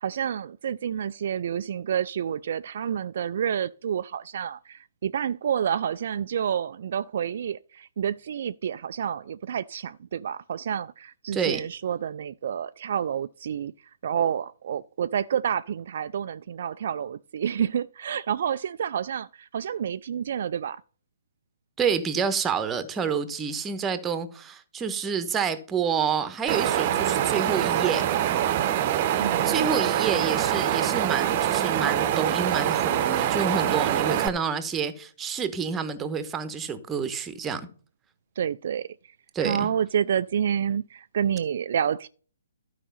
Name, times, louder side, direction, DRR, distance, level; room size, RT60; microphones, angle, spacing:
voice 1, 0.0-13.7 14.0-20.8 29.2-29.8 38.4-39.1 39.4-42.1, right 8 dB, 55° right, 0.3 m, -29 dB
voice 2, 11.3-11.6 21.8-28.1 29.4-37.7 39.3-39.7, right 6 dB, 15° right, 1.1 m, -28 dB
Wind, 26.5-34.3, right 11 dB, 35° right, 0.8 m, -24 dB
12.5 x 4.8 x 5.6 m
figure-of-eight pair, 135°, 0 cm